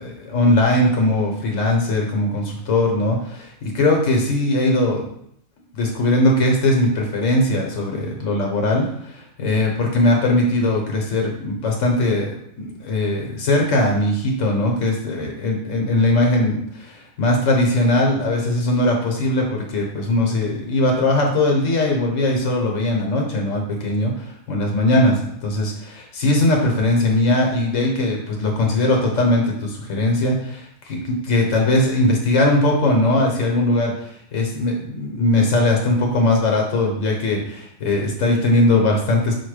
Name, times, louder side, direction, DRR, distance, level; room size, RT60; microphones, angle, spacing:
voice 1, 0.0-5.1 5.7-12.3 12.6-16.9 17.2-24.1 24.5-33.9 34.3-39.4, left 1 dB, 85° left, 1 dB, 1.4 m, -20 dB
5.0 x 2.2 x 4.8 m, 0.71 s
omnidirectional pair, 1.3 m